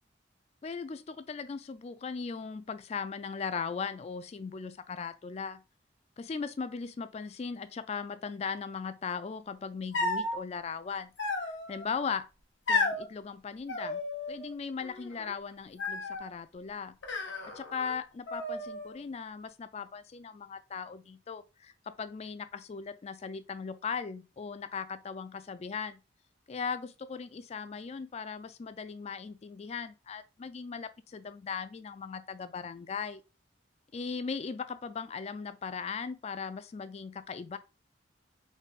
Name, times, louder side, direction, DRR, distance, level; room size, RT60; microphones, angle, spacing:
voice 1, 0.6-5.6 6.2-12.3 12.7-14.0 14.3-16.9 17.5-21.7 22.0-26.0 26.5-33.2 33.9-37.6, left 5 dB, 35° left, 0.3 m, -38 dB
sound 1, 9.9-10.4 11.2-11.9 12.7-13.0 13.7-14.5 14.8-15.3 15.8-16.3 17.0-17.9 18.3-19.0, left 3 dB, 80° left, 1.0 m, -33 dB
3.6 x 2.3 x 4.1 m
head